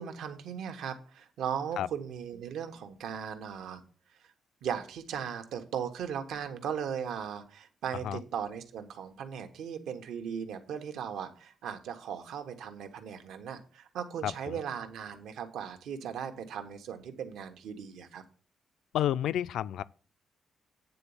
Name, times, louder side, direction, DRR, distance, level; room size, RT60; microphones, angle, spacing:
voice 1, 0.0-3.8 4.6-18.2, right 8 dB, 80° right, 1.1 m, -37 dB
voice 2, 14.2-14.6 18.9-19.8, left 11 dB, 80° left, 0.3 m, -30 dB
9.1 x 4.0 x 7.0 m
cardioid pair, 175°, 0 cm